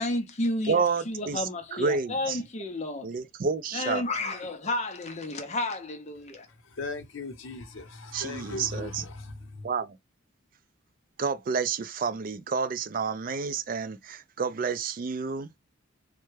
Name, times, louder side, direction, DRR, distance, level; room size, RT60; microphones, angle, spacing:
voice 1, 0.0-3.1 3.7-6.5, left 2 dB, 35° left, 0.6 m, -31 dB
voice 2, 0.7-2.4 3.0-4.1 8.1-9.0 9.6-10.0 11.2-15.6, right 5 dB, 45° right, 0.3 m, -30 dB
voice 3, 6.5-9.7, left 3 dB, 75° left, 0.7 m, -38 dB
3.2 x 2.2 x 3.1 m
head